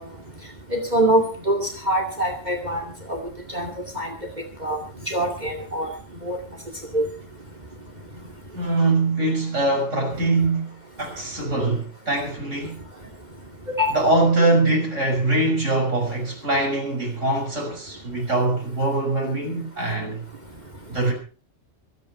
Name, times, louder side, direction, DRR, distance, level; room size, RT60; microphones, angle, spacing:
voice 1, 0.7-2.8 3.1-3.2 3.5-4.1 4.6-4.8 5.1-5.9 6.2-6.4 6.9-7.1 13.7-14.0, right 1 dB, 35° right, 2.5 m, -23 dB
voice 2, 8.5-12.8 13.9-20.3 20.9-21.1, right 2 dB, 80° right, 6.4 m, -23 dB
23.5 x 9.8 x 4.7 m
omnidirectional pair, 1.3 m